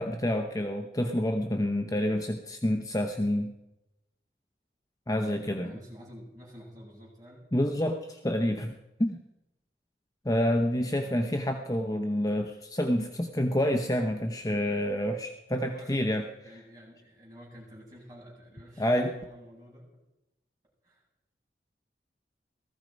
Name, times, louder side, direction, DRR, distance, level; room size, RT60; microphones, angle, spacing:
voice 1, 0.0-3.5 5.1-5.7 7.5-9.2 10.2-16.2 18.8-19.1, left 1 dB, 20° left, 4 dB, 0.9 m, -28 dB
voice 2, 5.6-7.5 10.9-11.1 15.5-16.0 16.3-19.9 20.8-21.0, equal, 20° right, -4 dB, 7.9 m, -50 dB
18.0 x 14.5 x 5.3 m, 0.93 s
head